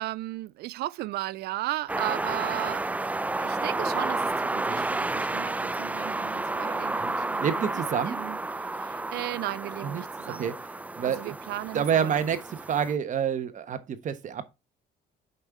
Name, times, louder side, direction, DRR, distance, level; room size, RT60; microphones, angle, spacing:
voice 1, 0.0-2.8 3.4-7.5 7.7-8.4 8.7-10.5 11.0-12.2, right 17 dB, 75° right, 0.4 m, -35 dB
sound 1, 1.9-12.9, right 2 dB, 10° right, 0.4 m, -31 dB
voice 2, 7.0-8.2 9.8-10.6 11.0-11.3 11.7-14.5, right 8 dB, 50° right, 1.2 m, -28 dB
6.2 x 5.5 x 4.8 m
cardioid pair, 110°, 17 cm